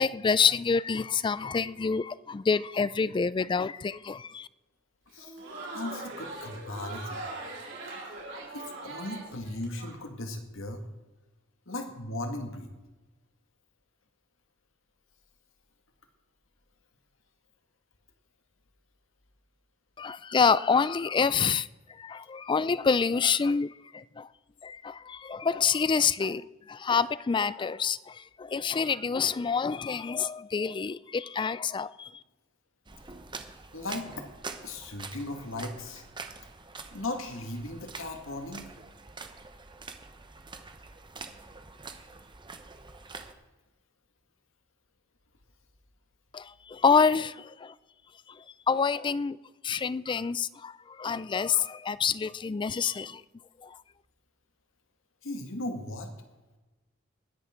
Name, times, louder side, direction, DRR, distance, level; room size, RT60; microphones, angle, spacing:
voice 1, 0.0-4.5 20.0-24.3 24.6-32.1 46.3-47.7 48.3-49.4 49.6-53.2 53.6-53.8, left 5 dB, 25° left, 0.3 m, -27 dB
Crowd, 5.1-9.9, right 2 dB, 65° right, 4.2 m, -41 dB
voice 2, 5.7-7.3 8.5-10.8 11.7-12.7 33.7-34.3 34.6-36.0 36.9-38.7 55.2-56.1, left 2 dB, 80° left, 1.9 m, -37 dB
sound 1, 32.9-43.3, right 4 dB, 25° right, 0.9 m, -45 dB
19.5 x 10.5 x 3.8 m
head